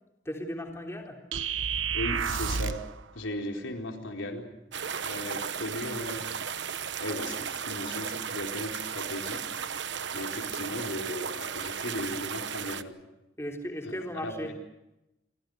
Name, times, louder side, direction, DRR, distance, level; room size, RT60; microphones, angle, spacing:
voice 1, 0.3-1.2 13.4-14.5, equal, 15° left, 2 dB, 3.6 m, -36 dB
sound 1, 1.3-2.9, right 6 dB, 90° right, 1.1 m, -30 dB
voice 2, 1.9-2.8 3.1-4.5 5.0-6.2 7.0-9.5 10.1-13.0 13.9-14.5, left 1 dB, 90° left, 3 dB, 4.3 m, -37 dB
sound 2, 4.7-12.8, right 7 dB, 70° right, 1.1 m, -35 dB
29.5 x 24.5 x 6.5 m, 0.93 s
head